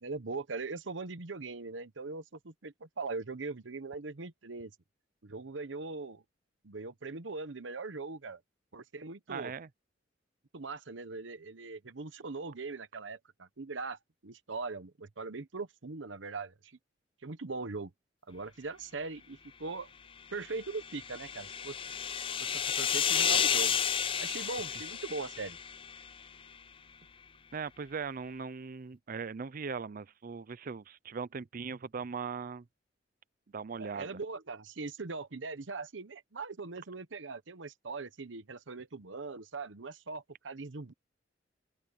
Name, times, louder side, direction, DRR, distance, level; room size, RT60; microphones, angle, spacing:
voice 1, 0.0-4.7 5.2-6.2 6.6-8.4 8.7-9.5 10.5-16.8 17.2-17.9 18.3-19.9 20.3-21.8 22.8-23.8 24.2-25.6 33.8-40.9, right 3 dB, 80° right, 1.0 m, -40 dB
voice 2, 9.3-9.7 27.5-32.6 33.5-34.1, right 5 dB, 50° right, 0.5 m, -39 dB
sound 1, 20.5-26.1, left 8 dB, 30° left, 0.5 m, -31 dB
open air
head